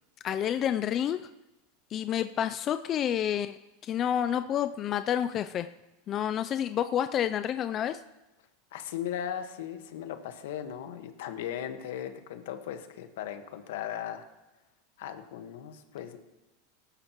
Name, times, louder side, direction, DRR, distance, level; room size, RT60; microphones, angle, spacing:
voice 1, 0.2-1.3 1.9-3.6 3.8-5.7 6.1-8.0, left 10 dB, 35° left, 10 dB, 0.3 m, -29 dB
voice 2, 8.7-14.3 15.0-16.2, left 10 dB, 80° left, 7 dB, 1.3 m, -37 dB
18.5 x 11.5 x 3.0 m, 0.99 s
supercardioid pair, 135°, 0 cm